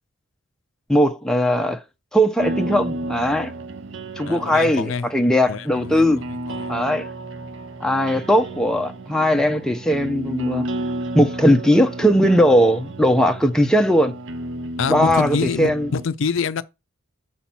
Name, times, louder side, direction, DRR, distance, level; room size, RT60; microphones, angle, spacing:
voice 1, 0.9-1.8 2.1-3.5 4.2-6.2 6.7-7.1 7.8-10.7 11.1-14.1 14.9-15.9, equal, 5° left, 0.5 m, -18 dB
sound 1, 2.4-16.1, right 1 dB, 60° right, 0.6 m, -32 dB
voice 2, 4.3-5.1 5.5-6.0 6.5-6.7 14.8-16.6, left 5 dB, 65° left, 0.4 m, -26 dB
6.2 x 5.8 x 4.2 m
head